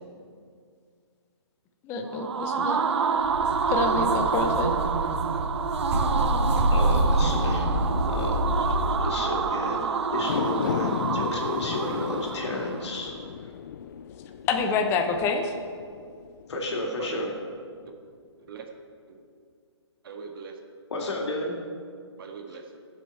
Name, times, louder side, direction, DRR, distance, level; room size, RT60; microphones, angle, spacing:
voice 1, 1.8-2.8 3.7-4.7 14.5-15.5, left 4 dB, 15° left, 4 dB, 0.7 m, -27 dB
sound 1, 2.0-12.9, right 6 dB, 70° right, 0.8 m, -28 dB
sound 2, 3.1-9.1, right 1 dB, 30° right, 3.4 m, -26 dB
voice 2, 6.7-7.7 8.1-8.3 9.0-13.1 16.5-17.3 20.9-21.5, left 2 dB, 70° left, 0 dB, 2.9 m, -32 dB
sound 3, 10.1-16.6 17.0-17.1, left 8 dB, 45° left, 0.4 m, -34 dB
voice 3, 17.0-17.3 18.4-18.7 19.1-19.2 20.0-20.6 22.2-22.8, right 6 dB, 50° right, 3 dB, 1.6 m, -41 dB
16.0 x 7.3 x 4.6 m, 2.2 s
hypercardioid pair, 145°, 15 cm